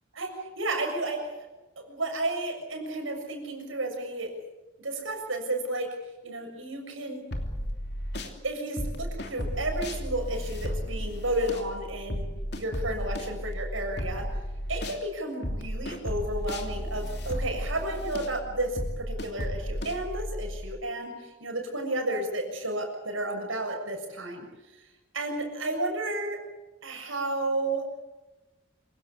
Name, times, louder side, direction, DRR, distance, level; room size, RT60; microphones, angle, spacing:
voice 1, 0.6-1.3 1.9-4.3 4.8-5.9 6.2-7.2 8.4-12.2 12.5-14.3 14.7-24.5 25.1-26.4 26.8-27.8, right 1 dB, 90° right, 3 dB, 6.9 m, -32 dB
sound 1, 7.3-8.4 8.8-15.0 15.4-20.6, equal, 55° left, 3.0 m, -34 dB
27.0 x 17.5 x 8.4 m, 1.1 s
head